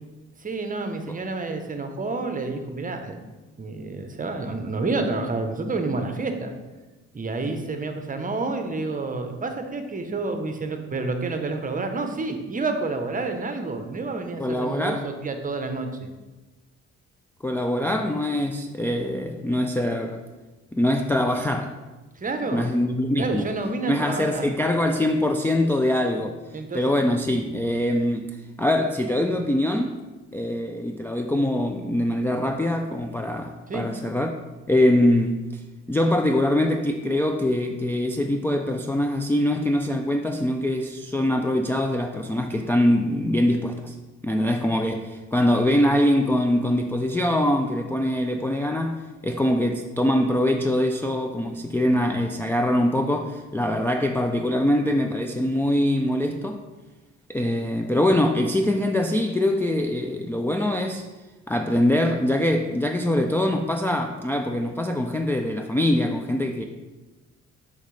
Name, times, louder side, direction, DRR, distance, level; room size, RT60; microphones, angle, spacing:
voice 1, 0.4-3.2 3.6-6.5 7.1-16.1 22.2-22.7 23.2-24.5 26.5-26.8 33.7-33.9, right 3 dB, 25° right, 6 dB, 0.8 m, -29 dB
voice 2, 14.4-15.0 17.4-20.2 20.7-21.8 22.5-23.5 23.9-26.4 26.7-30.0 30.3-34.3 34.7-35.6 35.9-43.9 44.2-56.6 57.3-61.0 61.5-66.6, left 1 dB, 10° left, 3 dB, 0.3 m, -23 dB
6.4 x 5.2 x 3.2 m, 1.2 s
cardioid pair, 90°, 30 cm